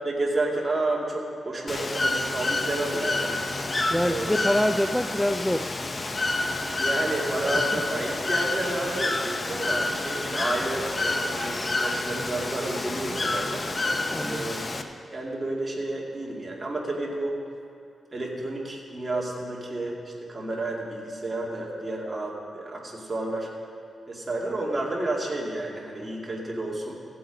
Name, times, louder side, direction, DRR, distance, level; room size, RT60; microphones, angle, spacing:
voice 1, 0.0-3.3 4.0-4.4 6.8-13.6 14.3-14.6 15.1-17.3 18.1-23.5 24.1-27.0, right 2 dB, 25° right, -2 dB, 2.3 m, -31 dB
Bird / Water, 1.7-14.8, left 2 dB, 30° left, 0.7 m, -28 dB
voice 2, 3.9-5.7 7.9-8.0 14.1-14.6, left 1 dB, 5° left, 8 dB, 0.3 m, -25 dB
16.0 x 7.8 x 5.3 m, 2.6 s
cardioid pair, 105°, 0 cm